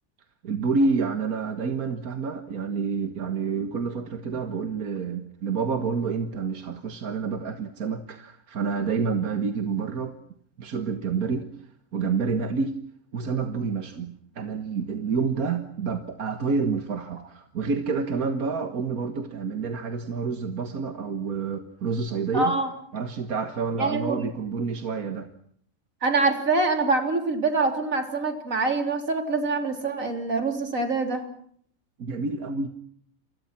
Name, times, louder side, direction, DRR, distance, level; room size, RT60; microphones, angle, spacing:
voice 1, 0.4-10.1 10.6-11.5 11.9-12.8 13.1-22.5 22.9-25.3 32.0-32.7, right 5 dB, 85° right, 8 dB, 2.0 m, -28 dB
voice 2, 22.3-22.7 23.8-24.3 26.0-31.2, right 3 dB, 65° right, 5 dB, 4.1 m, -25 dB
30.0 x 25.0 x 6.0 m, 0.64 s
omnidirectional pair, 1.5 m